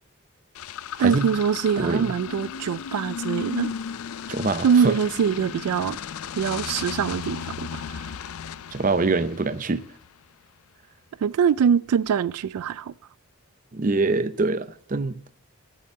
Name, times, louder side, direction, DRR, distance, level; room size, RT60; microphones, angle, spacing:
sound 1, 0.5-10.1, left 7 dB, 75° left, 0.4 m, -35 dB
voice 1, 1.0-3.7 4.6-6.0 6.4-8.1 11.2-12.9, right 7 dB, 85° right, 0.3 m, -23 dB
voice 2, 1.8-2.1 4.3-5.0 8.7-9.8 13.7-15.2, right 3 dB, 35° right, 0.5 m, -24 dB
8.7 x 6.8 x 8.4 m
head